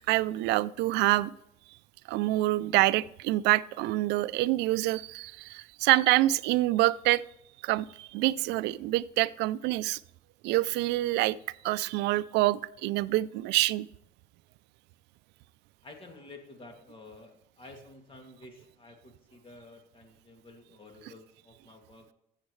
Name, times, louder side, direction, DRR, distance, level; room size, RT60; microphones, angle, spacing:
voice 1, 0.0-1.3 2.1-7.2 7.6-10.0 10.4-11.4 11.6-13.9, right 17 dB, 90° right, 17 dB, 0.4 m, -26 dB
voice 2, 15.8-22.1, left 2 dB, 30° left, 3 dB, 2.5 m, -51 dB
14.5 x 7.4 x 3.2 m, 0.79 s
cardioid pair, 110°, 17 cm